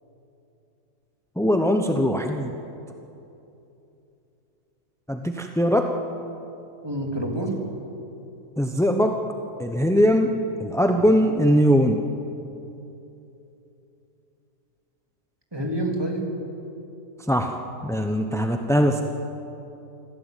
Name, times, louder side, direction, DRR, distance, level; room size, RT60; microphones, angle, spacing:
voice 1, 1.4-2.5 5.1-5.9 8.6-9.2 9.6-10.3 10.6-12.0 17.3-17.5 17.8-19.0, equal, 5° left, 4 dB, 0.6 m, -21 dB
voice 2, 6.8-7.6 10.9-11.1 15.5-16.3, right 1 dB, 15° right, 0 dB, 3.1 m, -27 dB
25.0 x 15.5 x 9.1 m, 2.9 s
omnidirectional pair, 1.6 m